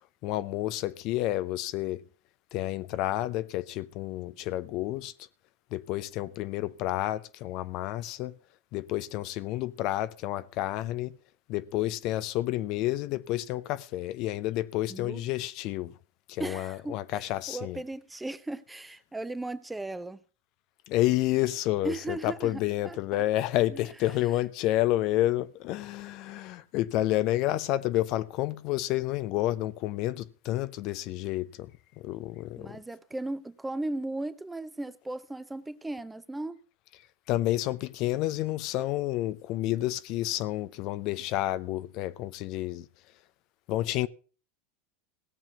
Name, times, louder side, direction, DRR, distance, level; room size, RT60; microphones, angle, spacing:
voice 1, 0.2-2.0 2.5-5.1 5.7-8.3 8.7-11.1 11.5-15.9 16.3-17.8 20.9-31.7 32.0-32.8 37.3-42.8 43.7-44.1, left 15 dB, 50° left, 0.7 m, -30 dB
voice 2, 14.9-15.2 16.4-20.2 21.8-23.2 23.7-23.9 32.6-36.6, right 2 dB, 10° right, 0.9 m, -37 dB
17.0 x 7.4 x 6.0 m
figure-of-eight pair, 85°, 0 cm